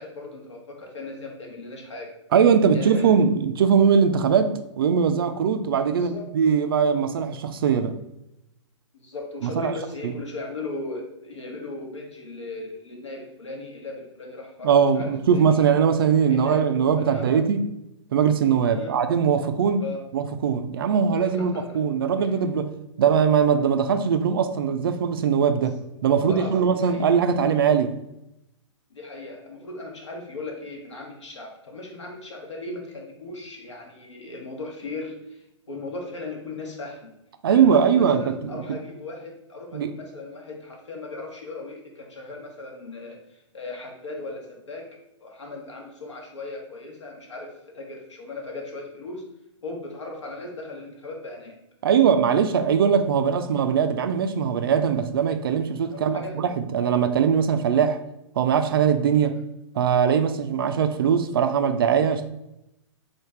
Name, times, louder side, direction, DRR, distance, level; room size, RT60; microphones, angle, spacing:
voice 1, 0.0-2.1 2.7-3.2 5.9-6.3 8.9-15.6 16.3-17.4 18.7-18.9 19.8-20.0 21.2-21.8 25.6-25.7 26.1-27.1 28.9-37.1 37.5-44.9 45.2-49.2 49.6-51.6 53.3-53.4 55.9-56.3 59.3-59.4, left 2 dB, 70° left, 1.1 m, -37 dB
voice 2, 2.3-8.0 9.4-9.7 10.0-10.1 14.6-17.6 18.1-19.8 20.1-22.7 23.0-25.8 26.0-27.9 37.4-38.6 39.7-39.9 51.8-58.0 58.4-59.4 59.8-62.3, right 7 dB, 50° right, 0.4 m, -21 dB
3.9 x 3.3 x 3.2 m
figure-of-eight pair, 115°, 16 cm